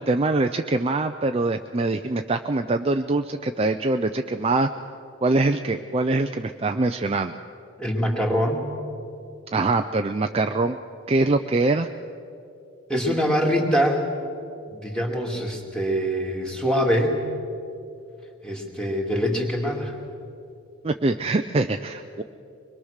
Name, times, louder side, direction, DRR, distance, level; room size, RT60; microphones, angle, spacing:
voice 1, 0.0-4.7 5.2-7.3 9.5-10.8 11.1-11.9 20.8-22.2, right 2 dB, 25° right, 6 dB, 0.4 m, -23 dB
voice 2, 7.8-8.6 12.9-14.0 14.7-17.1 18.4-19.9, equal, 5° left, -1 dB, 2.4 m, -24 dB
23.5 x 21.5 x 6.5 m, 2.6 s
head